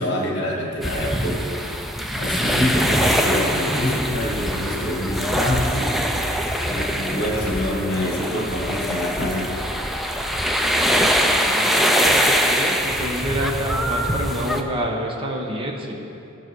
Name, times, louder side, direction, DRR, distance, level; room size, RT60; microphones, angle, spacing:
voice 1, 0.0-1.5 2.2-6.0 6.7-9.5, left 1 dB, 60° left, 0 dB, 1.9 m, -25 dB
sound 1, 0.8-14.6, equal, ahead, 0.5 m, -23 dB
voice 2, 11.5-16.1, equal, 25° right, 0 dB, 1.2 m, -28 dB
14.5 x 6.1 x 4.7 m, 2.8 s
head